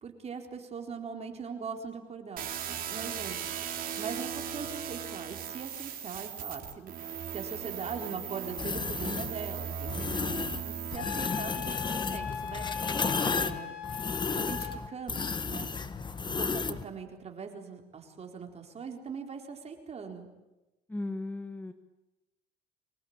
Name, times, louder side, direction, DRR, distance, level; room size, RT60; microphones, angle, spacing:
voice 1, 0.0-3.4 4.0-10.2 10.6-12.9 13.2-13.7 14.3-15.7 16.4-20.3, right 5 dB, 40° right, 3 dB, 4.1 m, -41 dB
sound 1, 2.4-11.0, right 8 dB, 55° right, 3.4 m, -38 dB
sound 2, 8.6-9.3 9.9-10.6 10.9-16.8, left 4 dB, 25° left, 1.4 m, -33 dB
Wind instrument woodwind instrument, 10.9-14.8, left 8 dB, 65° left, 3.0 m, -39 dB
voice 2, 20.9-21.7, left 2 dB, 10° left, 8 dB, 1.6 m, -36 dB
25.0 x 20.5 x 8.9 m, 1.0 s
cardioid pair, 110°, 17 cm